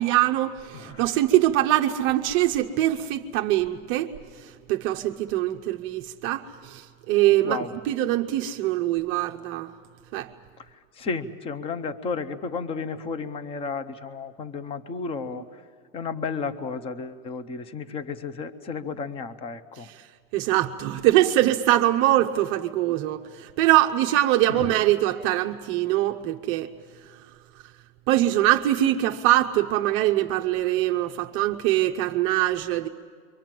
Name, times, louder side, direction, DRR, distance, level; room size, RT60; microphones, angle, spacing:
voice 1, 0.0-4.1 4.4-9.7 10.1-10.3 20.3-26.7 28.1-32.9, right 14 dB, 30° right, 0.6 m, -23 dB
voice 2, 0.7-1.1 7.4-7.7 10.6-10.7 11.0-15.6 15.9-19.9 24.5-24.7, left 4 dB, 15° left, 0.6 m, -33 dB
28.5 x 24.0 x 7.6 m
supercardioid pair, 150°, 41 cm